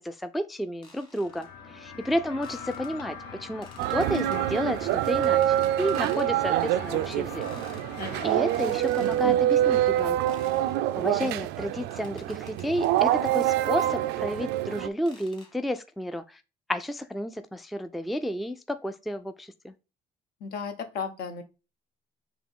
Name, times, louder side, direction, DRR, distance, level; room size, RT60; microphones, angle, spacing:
voice 1, 0.0-1.5 1.7-7.4 8.2-10.4 11.0-16.4 16.7-19.7, equal, ahead, 0.3 m, -31 dB
sound 1, 0.8-1.5 2.4-2.9 3.6-4.4 5.2-6.3 6.6-6.8 7.4-7.9 8.5-9.2 10.3-10.8 11.9-13.0 13.8-14.0 15.1-15.6, left 3 dB, 25° left, 1.7 m, -53 dB
sound 2, 1.2-8.8, left 5 dB, 90° left, 1.1 m, -42 dB
sound 3, 3.8-14.9, right 13 dB, 90° right, 0.4 m, -26 dB
voice 2, 8.0-8.3 20.4-21.4, left 5 dB, 65° left, 0.9 m, -35 dB
4.9 x 3.0 x 3.6 m
cardioid pair, 110°, 17 cm